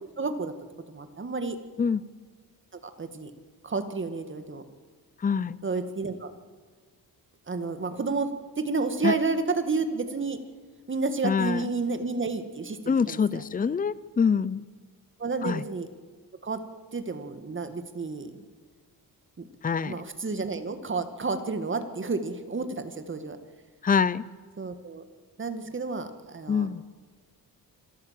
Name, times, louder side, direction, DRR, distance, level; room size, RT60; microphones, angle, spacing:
voice 1, 0.2-0.5 0.9-1.6 3.0-3.3 3.6-4.6 5.6-6.3 7.5-8.3 8.6-10.4 10.9-13.2 15.2-15.9 16.4-16.6 16.9-18.3 19.4-19.5 19.8-23.4 24.6-25.0 25.4-26.7, right 4 dB, 30° right, 8 dB, 2.1 m, -30 dB
voice 2, 5.2-5.6 9.0-9.1 11.2-11.7 12.9-14.6 15.4-15.6 19.6-20.0 23.8-24.2 26.5-26.8, left 6 dB, 25° left, 19 dB, 0.6 m, -25 dB
26.5 x 13.5 x 7.7 m, 1.5 s
cardioid pair, 105°, 37 cm